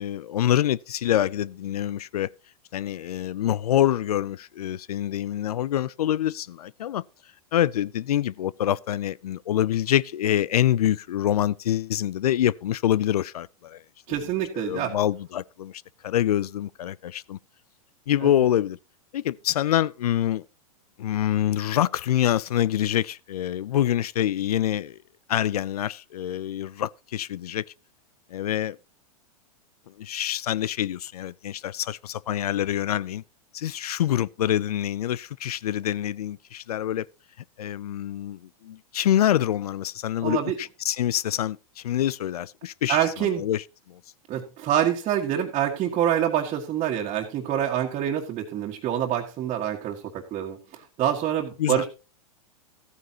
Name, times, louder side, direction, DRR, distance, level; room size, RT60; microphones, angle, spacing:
voice 1, 0.0-2.3 2.7-7.0 7.5-13.8 14.5-17.4 18.1-18.8 19.1-20.4 21.0-25.0 25.3-27.6 28.3-28.8 30.0-33.2 33.5-37.1 37.6-44.0 51.6-51.9, left 11 dB, 85° left, 0.5 m, -26 dB
voice 2, 14.1-14.9 18.2-18.3 40.2-40.6 42.9-43.5 44.3-51.9, right 10 dB, 35° right, 1.8 m, -26 dB
14.5 x 9.4 x 2.9 m
hypercardioid pair, 115°, 19 cm